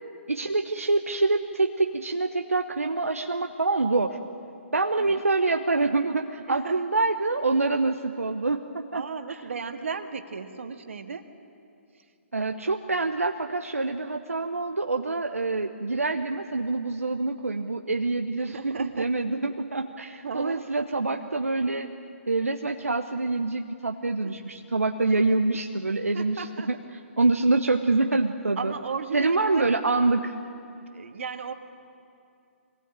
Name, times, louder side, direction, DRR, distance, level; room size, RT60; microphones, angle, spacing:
voice 1, 0.3-4.2 4.7-9.4 12.3-21.9 22.3-26.8 27.2-28.7 29.1-30.3, right 3 dB, 85° right, 5 dB, 1.0 m, -26 dB
voice 2, 8.9-11.2 18.4-19.1 20.2-20.6 26.1-26.7 28.6-29.7 30.9-31.5, right 5 dB, 65° right, 7 dB, 1.7 m, -35 dB
24.0 x 19.0 x 8.9 m, 2.5 s
figure-of-eight pair, 135°, 7 cm